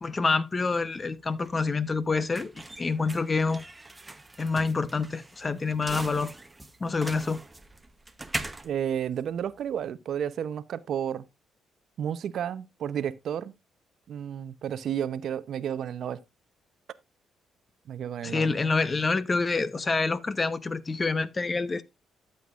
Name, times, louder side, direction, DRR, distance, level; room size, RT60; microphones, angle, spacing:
voice 1, 0.0-2.5 2.8-3.6 4.4-6.3 6.8-7.4 18.2-21.8, left 4 dB, 30° left, 0.8 m, -27 dB
sound 1, 0.8-9.9, right 2 dB, 15° right, 0.9 m, -41 dB
voice 2, 8.6-11.2 12.0-13.5 14.1-16.2 17.9-18.5, right 9 dB, 65° right, 0.7 m, -32 dB
12.5 x 7.9 x 2.4 m
cardioid pair, 90°, 0 cm